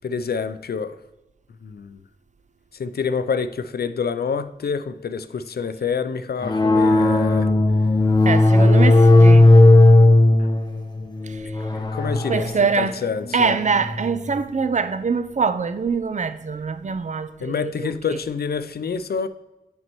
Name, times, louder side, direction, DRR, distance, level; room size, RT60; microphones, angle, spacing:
voice 1, 0.0-1.0 1.6-2.0 2.7-7.5 11.7-13.6 17.4-19.3, left 6 dB, 70° left, 0.4 m, -27 dB
sound 1, 6.4-14.5, left 2 dB, 25° left, 0.8 m, -16 dB
voice 2, 8.3-9.5 12.3-12.9 13.3-17.7, right 5 dB, 45° right, 0.4 m, -23 dB
9.3 x 5.3 x 3.0 m
wide cardioid pair, 80°, 17 cm